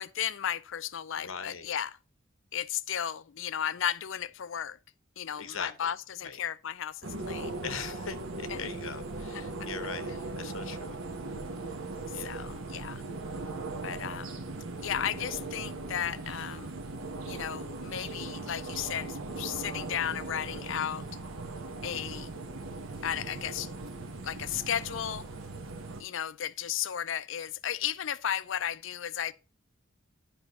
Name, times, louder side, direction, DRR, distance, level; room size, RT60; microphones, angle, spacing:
voice 1, 0.0-1.9 2.5-4.8 5.2-7.6 8.5-8.7 9.3-9.4 12.1-13.0 13.8-14.4 14.8-16.7 17.2-21.1 21.8-22.3 23.0-23.7 24.2-25.3 26.0-29.3, left 9 dB, 65° left, 0.4 m, -34 dB
voice 2, 1.2-1.7 5.4-5.9 6.2-6.4 7.6-10.9 12.1-12.5 15.2-15.4, left 6 dB, 80° left, 0.9 m, -41 dB
sound 1, 7.0-26.0, right 2 dB, 80° right, 1.1 m, -39 dB
10.5 x 5.4 x 3.1 m
head